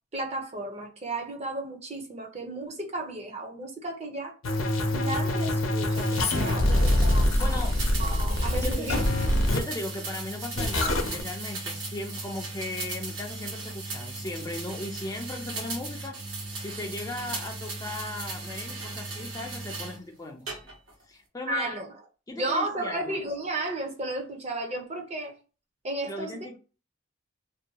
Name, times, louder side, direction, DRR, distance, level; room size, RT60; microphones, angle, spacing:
voice 1, 0.1-4.3 4.6-7.7 8.0-9.0 21.5-21.9 22.3-25.4 25.8-26.6, right 2 dB, 35° right, 0.6 m, -33 dB
sound 1, 4.4-9.6 10.6-11.2, left 1 dB, 90° left, 0.6 m, -24 dB
sound 2, 5.9-20.0 20.5-21.0, right 3 dB, 75° right, 1.1 m, -37 dB
voice 2, 6.5-7.8 8.5-8.9 9.5-16.2 16.5-20.6 21.1-21.7 22.3-23.2 26.1-26.6, left 2 dB, 20° left, 0.4 m, -37 dB
2.6 x 2.2 x 2.8 m
head